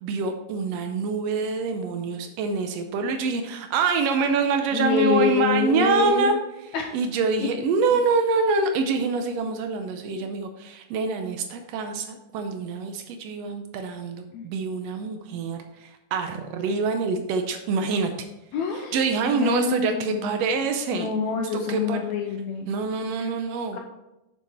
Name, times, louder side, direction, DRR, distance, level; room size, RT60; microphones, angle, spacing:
voice 1, 0.0-18.3 18.7-21.1 21.5-22.0 22.7-23.8, right 4 dB, 90° right, 6 dB, 1.4 m, -26 dB
voice 2, 4.7-6.3 6.7-7.0 7.4-7.5 10.1-10.2 14.3-14.5 18.5-19.1 19.3-20.4 20.9-22.7 23.2-23.3 23.7-23.8, left 6 dB, 75° left, 2 dB, 1.7 m, -26 dB
7.2 x 6.9 x 4.3 m, 0.93 s
omnidirectional pair, 3.8 m